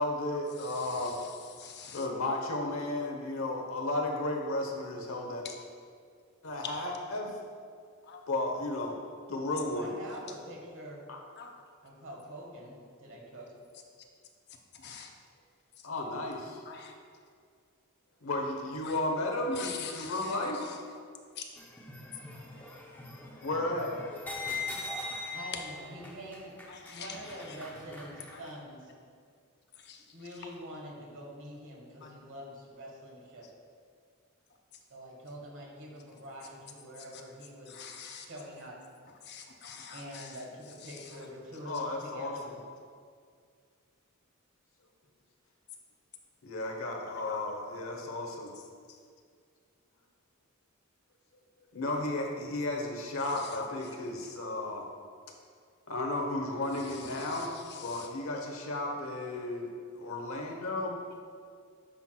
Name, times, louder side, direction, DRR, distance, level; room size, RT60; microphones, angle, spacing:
voice 1, 0.0-1.2 1.9-5.4 6.4-7.4 8.3-9.0 9.3-9.9 11.1-11.2 15.8-16.6 18.2-20.6 23.4-24.0 41.7-42.5 46.4-48.5 51.7-54.9 55.9-57.5 57.8-61.0, left 2 dB, 70° left, 2 dB, 0.9 m, -33 dB
voice 2, 0.6-2.1 5.4-5.6 8.0-8.2 10.3-10.4 11.4-11.5 14.5-15.1 15.8-15.9 16.6-16.9 18.8-19.0 19.5-20.8 21.4-21.5 26.7-27.6 28.3-28.4 29.7-30.2 32.0-32.2 37.0-37.2 37.7-38.3 39.2-40.4 40.8-41.2 41.7-41.8 47.1-47.8 48.6-49.0 53.2-53.9 54.2-54.3 56.7-58.1 61.1-61.2, left 6 dB, 50° left, 3 dB, 0.6 m, -46 dB
voice 3, 9.7-11.1 11.8-13.5 20.2-20.7 25.3-26.5 26.9-28.9 30.1-33.5 34.9-37.9 38.1-38.8 39.9-42.6, equal, 60° right, -2 dB, 1.5 m, -45 dB
sound 1, 21.6-28.5, left 3 dB, 10° left, 0.7 m, -42 dB
9.9 x 5.8 x 2.3 m, 2.1 s
head